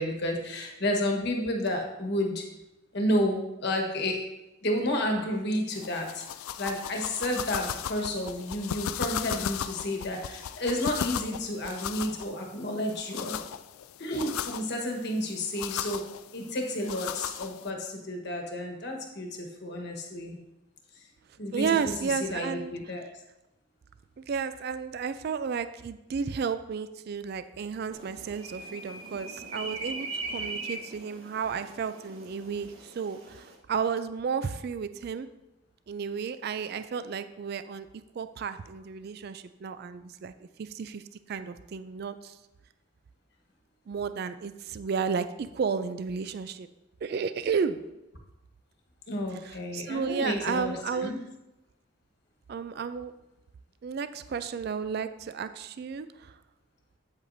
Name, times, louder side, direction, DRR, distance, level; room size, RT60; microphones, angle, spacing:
voice 1, 0.0-2.4 2.9-4.2 4.6-6.3 6.6-13.4 14.0-16.0 16.3-20.4 21.4-23.1 49.1-51.2, left 1 dB, 50° left, 2 dB, 1.3 m, -31 dB
sound 1, 5.7-17.7, left 9 dB, 85° left, 0.3 m, -37 dB
voice 2, 21.5-22.7 24.3-35.3 35.9-37.9 38.2-40.3 40.6-41.0 41.3-42.4 43.9-46.7 47.0-47.8 49.4-51.2 52.5-53.1 53.8-56.3, right 6 dB, 50° right, 12 dB, 0.3 m, -32 dB
sound 2, 27.9-33.6, right 3 dB, 80° right, 1.2 m, -40 dB
8.4 x 7.9 x 2.6 m, 0.97 s
head